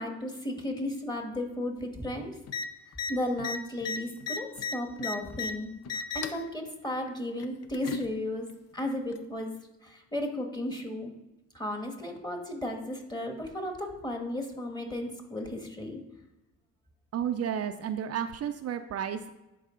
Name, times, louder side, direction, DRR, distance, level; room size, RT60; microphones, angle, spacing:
voice 1, 0.0-2.4 3.1-8.5 8.7-9.5 9.8-11.1 11.5-16.0, left 1 dB, 15° left, 3 dB, 1.4 m, -34 dB
sound 1, 2.5-2.6 2.9-3.1 3.4-5.5 5.8-6.4 7.4-8.1 9.1-9.2, left 5 dB, 55° left, 0.6 m, -34 dB
voice 2, 17.1-19.3, right 9 dB, 55° right, 8 dB, 0.5 m, -32 dB
10.5 x 4.6 x 3.8 m, 0.98 s
cardioid pair, 90°, 30 cm